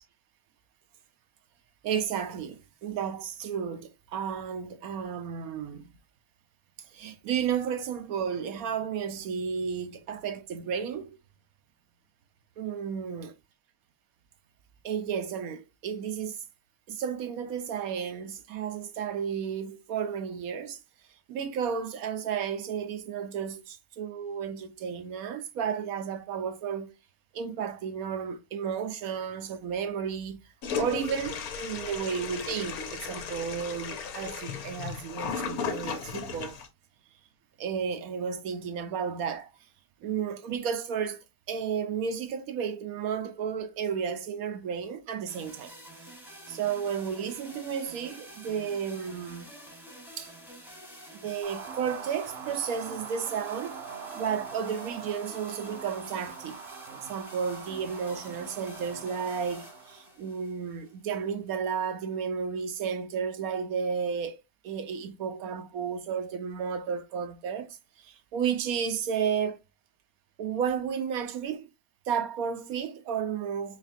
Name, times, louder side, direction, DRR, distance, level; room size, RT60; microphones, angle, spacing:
voice 1, 1.8-5.9 6.9-11.2 12.6-13.3 14.8-16.4 16.9-20.8 21.3-27.0 27.3-30.4 30.8-36.6 37.6-39.5 40.0-45.7 46.5-49.5 50.2-50.3 51.1-53.8 54.1-56.6 56.9-69.6 70.4-71.7 72.1-73.8, right 7 dB, 75° right, 1.0 m, -33 dB
Toilet flush, 30.6-36.7, left 6 dB, 75° left, 1.2 m, -35 dB
sound 1, 45.3-61.3, right 1 dB, ahead, 0.9 m, -48 dB
sound 2, 51.4-60.1, right 6 dB, 50° right, 0.7 m, -43 dB
4.2 x 3.2 x 2.6 m
omnidirectional pair, 1.6 m